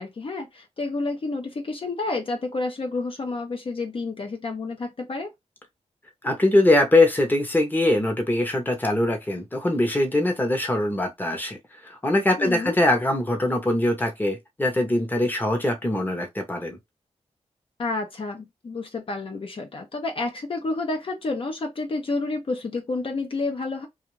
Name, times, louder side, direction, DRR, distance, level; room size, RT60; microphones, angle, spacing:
voice 1, 0.0-5.3 12.4-12.8 17.8-23.9, left 3 dB, 50° left, 0.7 m, -30 dB
voice 2, 6.2-11.6 11.8-16.8, left 1 dB, 15° left, 0.8 m, -22 dB
2.5 x 2.4 x 3.1 m
wide cardioid pair, 85°, 12 cm